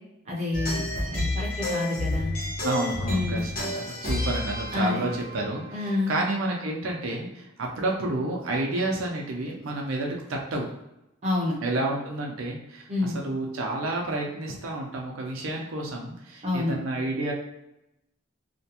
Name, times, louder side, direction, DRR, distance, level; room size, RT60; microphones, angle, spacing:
voice 1, 0.3-2.3 3.1-3.4 4.7-5.0 5.7-6.1 11.2-11.6 12.9-13.2 16.4-16.8, left 2 dB, 35° right, -4 dB, 0.6 m, -28 dB
sound 1, 0.5-6.3, left 1 dB, 45° left, 0.8 m, -30 dB
voice 2, 2.6-10.7 11.6-17.3, right 2 dB, 85° right, -1 dB, 0.5 m, -30 dB
2.4 x 2.1 x 2.8 m, 0.88 s
head